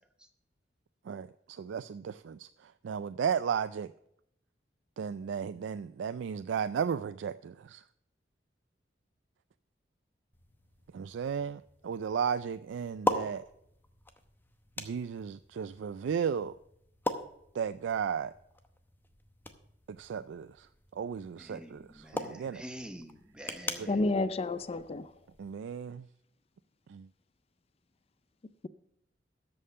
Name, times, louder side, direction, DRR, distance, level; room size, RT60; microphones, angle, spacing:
voice 1, 1.0-3.9 5.0-7.9 10.9-13.5 14.8-16.6 17.5-18.3 19.9-22.6 23.8-23.9 25.4-26.1 26.9-27.1, right 7 dB, 75° right, 0.3 m, -35 dB
sound 1, 10.3-25.5, left 1 dB, 10° left, 0.8 m, -41 dB
voice 2, 21.4-24.0, equal, 5° right, 1.1 m, -46 dB
voice 3, 23.9-25.1, left 2 dB, 35° left, 0.4 m, -30 dB
13.0 x 5.4 x 6.7 m
head